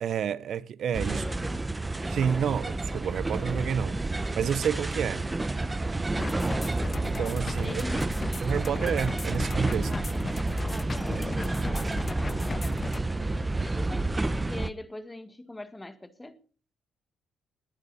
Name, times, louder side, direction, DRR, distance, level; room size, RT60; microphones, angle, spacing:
voice 1, 0.0-1.2 2.1-4.0 4.4-5.3 7.0-7.8 8.4-9.9, right 8 dB, 65° right, 0.7 m, -29 dB
sound 1, 0.9-14.7, right 2 dB, 15° right, 0.7 m, -30 dB
voice 2, 1.0-1.7 7.6-8.1 9.9-10.1 10.6-14.1 14.5-16.4, left 2 dB, 15° left, 1.7 m, -43 dB
sound 2, 6.2-13.0, left 4 dB, 30° left, 0.6 m, -37 dB
20.5 x 9.6 x 4.1 m
cardioid pair, 90°, 0 cm